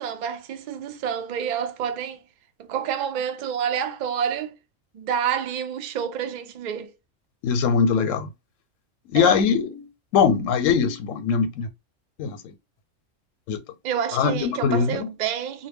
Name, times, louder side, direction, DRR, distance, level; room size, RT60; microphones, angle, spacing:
voice 1, 0.0-2.2 2.6-4.6 4.9-6.9 9.1-9.5 13.8-15.7, right 8 dB, 80° right, 0.4 m, -28 dB
voice 2, 7.4-8.3 9.1-9.9 10.1-11.7 12.2-12.5 13.5-13.6 14.1-15.1, left 6 dB, 85° left, 0.9 m, -21 dB
2.2 x 2.1 x 3.4 m
omnidirectional pair, 1.3 m